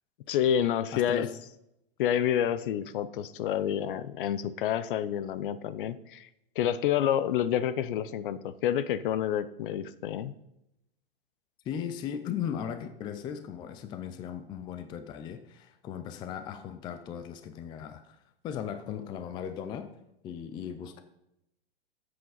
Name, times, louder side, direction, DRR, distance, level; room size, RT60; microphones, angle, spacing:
voice 1, 0.3-1.3 2.0-6.3 6.6-10.3, left 10 dB, 60° left, 15 dB, 0.7 m, -28 dB
voice 2, 0.9-1.3 11.6-18.2 18.4-19.9 20.2-21.0, left 8 dB, 15° left, 9 dB, 0.4 m, -37 dB
13.0 x 7.9 x 4.0 m, 0.84 s
hypercardioid pair, 150°, 30 cm